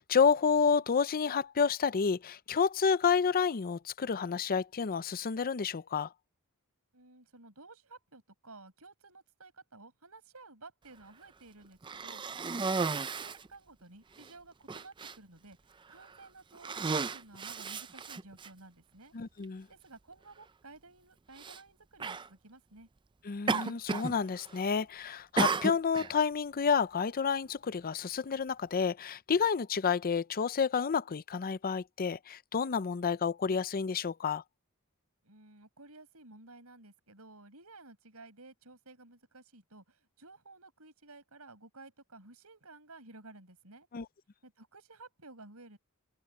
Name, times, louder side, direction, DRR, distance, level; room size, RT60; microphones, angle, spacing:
voice 1, 0.0-6.1 19.1-19.7 23.2-34.4 43.9-44.1, left 6 dB, 40° left, 0.5 m, -29 dB
voice 2, 6.9-19.1 19.7-22.9 35.2-43.9 44.4-45.8, right 2 dB, 80° right, 6.8 m, -54 dB
Cough, 11.8-13.5 14.2-14.3 14.7-15.2 15.9-16.2 16.5-18.5 19.4-19.5 21.4-21.6 22.0-22.3 23.5-24.2 24.4-24.8 25.4-26.1, right 4 dB, 20° right, 0.4 m, -33 dB
head